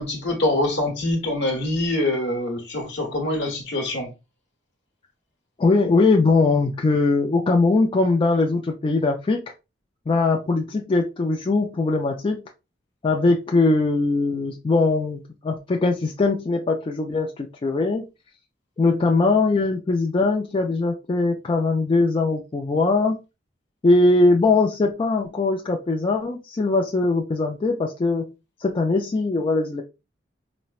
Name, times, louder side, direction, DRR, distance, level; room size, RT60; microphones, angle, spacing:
voice 1, 0.0-4.1, left 1 dB, 65° left, 1.1 m, -24 dB
voice 2, 5.6-9.4 10.1-12.4 13.0-18.1 18.8-23.2 23.8-28.3 28.6-29.8, left 3 dB, 30° left, 0.3 m, -21 dB
4.1 x 2.1 x 2.3 m
head